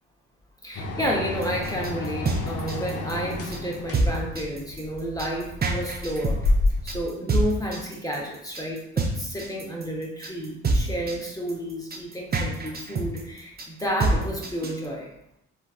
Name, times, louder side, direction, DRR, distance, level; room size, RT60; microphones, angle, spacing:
voice 1, 0.6-15.1, equal, 10° left, -2 dB, 0.8 m, -31 dB
sound 1, 0.8-7.0, left 2 dB, 40° left, 0.6 m, -29 dB
sound 2, 1.4-14.9, right 2 dB, 25° right, 0.5 m, -27 dB
3.1 x 2.3 x 2.4 m, 0.77 s
hypercardioid pair, 45°, 37 cm